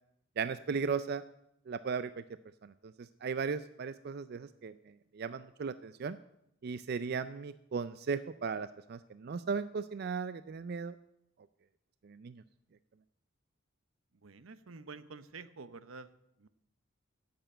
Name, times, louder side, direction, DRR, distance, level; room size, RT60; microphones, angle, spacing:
voice 1, 0.4-1.2 1.7-2.2 2.6-2.7 3.0-4.7 5.1-6.2 6.6-11.0 12.0-12.4, right 5 dB, 50° right, 13 dB, 0.4 m, -36 dB
voice 2, 14.2-16.1 16.4-16.5, right 4 dB, 85° right, 13 dB, 0.8 m, -49 dB
11.0 x 8.0 x 8.9 m, 0.79 s
head